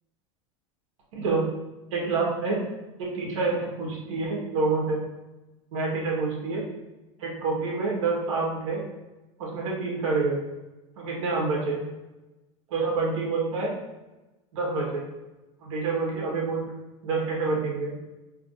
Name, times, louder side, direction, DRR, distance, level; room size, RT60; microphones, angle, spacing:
voice 1, 1.1-1.4 1.9-2.6 3.0-5.0 5.7-6.6 7.2-8.8 9.4-10.4 11.0-11.8 12.7-13.7 14.5-15.0 15.6-16.7 17.0-17.9, right 3 dB, 80° right, -2 dB, 1.5 m, -27 dB
4.6 x 3.3 x 2.6 m, 1.0 s
supercardioid pair, 120°, 16 cm